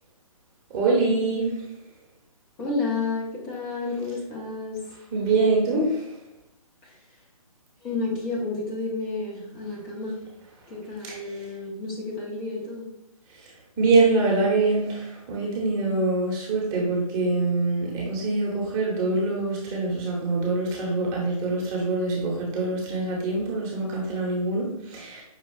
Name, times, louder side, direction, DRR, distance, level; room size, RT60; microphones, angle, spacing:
voice 1, 0.7-1.5 5.1-6.0 13.8-25.2, right 3 dB, 20° right, -3 dB, 1.1 m, -24 dB
voice 2, 2.6-4.8 6.8-7.0 7.8-10.2 10.7-12.9, left 3 dB, 20° left, -3 dB, 1.1 m, -31 dB
5.6 x 2.4 x 4.0 m, 0.84 s
figure-of-eight pair, 140°, 19 cm